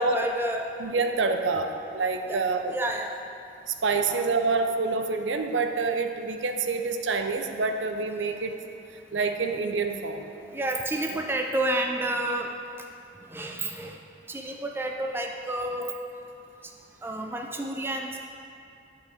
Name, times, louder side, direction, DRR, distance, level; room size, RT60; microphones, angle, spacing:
voice 1, 0.0-0.6 2.3-2.4 2.7-3.2 4.1-4.2 10.5-12.5 13.3-14.0 14.3-15.9 17.0-18.2, right 1 dB, 10° right, 2 dB, 0.4 m, -30 dB
voice 2, 0.8-2.8 3.7-8.6 9.1-10.3 11.1-11.2, right 4 dB, 80° right, 5 dB, 0.6 m, -27 dB
10.0 x 5.7 x 5.0 m, 2.6 s
head